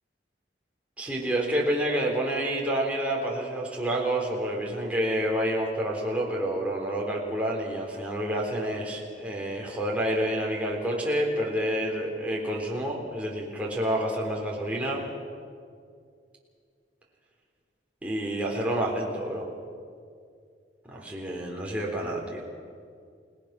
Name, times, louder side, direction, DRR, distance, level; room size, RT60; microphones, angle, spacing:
voice 1, 1.0-15.0 18.0-19.5 20.9-22.4, right 1 dB, 10° right, -3 dB, 3.8 m, -28 dB
29.0 x 18.5 x 6.0 m, 2.2 s
head